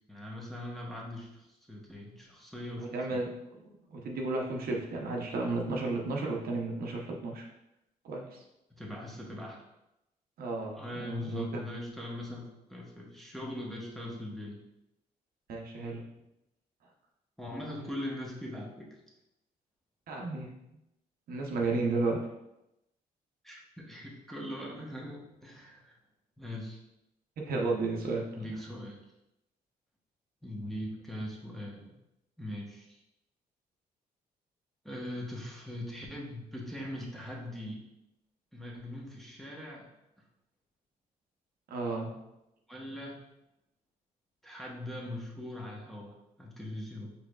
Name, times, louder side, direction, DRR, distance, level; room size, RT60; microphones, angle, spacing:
voice 1, 0.1-3.3 8.7-9.6 10.7-14.6 17.4-19.0 23.4-25.9 26.4-26.8 28.4-29.0 30.4-31.9 32.4-33.0 34.8-37.8 38.5-39.9 42.7-43.2 44.4-47.1, left 1 dB, ahead, -3 dB, 1.0 m, -41 dB
voice 2, 2.8-7.4 8.0-8.4 10.4-11.5 15.5-16.0 20.1-20.5 21.3-22.2 27.5-28.2 41.7-42.1, right 3 dB, 70° right, 0 dB, 0.8 m, -33 dB
4.6 x 3.3 x 2.3 m, 0.88 s
cardioid pair, 90°, 16 cm